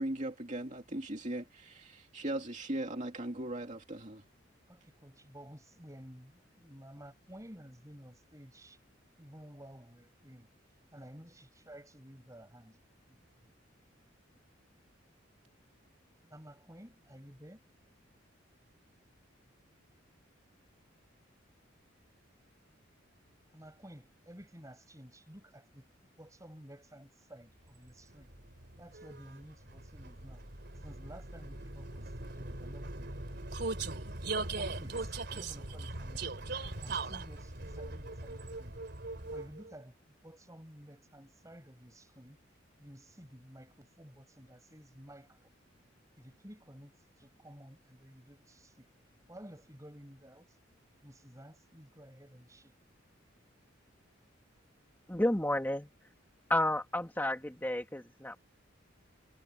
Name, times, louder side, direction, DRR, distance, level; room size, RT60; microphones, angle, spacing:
voice 1, 0.0-4.2, right 1 dB, 40° right, 2.4 m, -38 dB
voice 2, 4.7-8.8 9.2-10.5 10.9-12.8 13.0-13.5 14.3-14.4 16.2-17.6 23.5-25.9 26.2-28.3 28.7-30.4 30.8-33.2 34.6-38.8 39.3-42.4 42.8-45.5 46.2-48.9 49.3-50.6 51.0-52.7, equal, 15° right, 7.2 m, -53 dB
Vehicle, 27.9-39.7, right 3 dB, 55° right, 3.5 m, -40 dB
voice 3, 55.1-55.9 56.5-58.4, left 1 dB, 10° left, 2.1 m, -31 dB
head